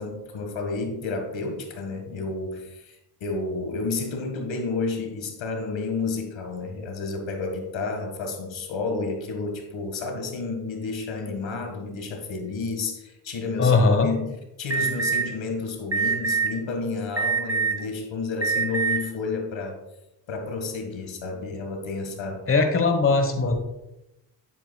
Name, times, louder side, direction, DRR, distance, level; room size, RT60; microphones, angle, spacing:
voice 1, 0.0-14.3 14.6-19.8 20.3-22.4, left 3 dB, 70° left, 4 dB, 1.9 m, -31 dB
voice 2, 13.6-14.1 22.5-23.6, left 3 dB, 25° left, 5 dB, 1.3 m, -20 dB
Alarm, 14.7-15.2 15.9-16.5 17.2-17.8 18.4-19.0, right 6 dB, 30° right, 2.4 m, -23 dB
10.5 x 8.5 x 2.4 m, 0.91 s
supercardioid pair, 55°, 47 cm